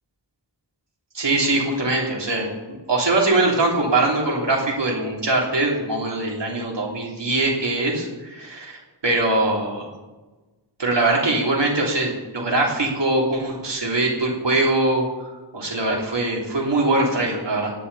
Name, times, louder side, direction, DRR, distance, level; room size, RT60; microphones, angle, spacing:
voice 1, 1.1-2.5 2.9-9.9 10.8-15.1 15.5-17.7, right 2 dB, 80° right, -2 dB, 3.4 m, -22 dB
17.5 x 11.0 x 4.2 m, 1.2 s
wide cardioid pair, 65°, 42 cm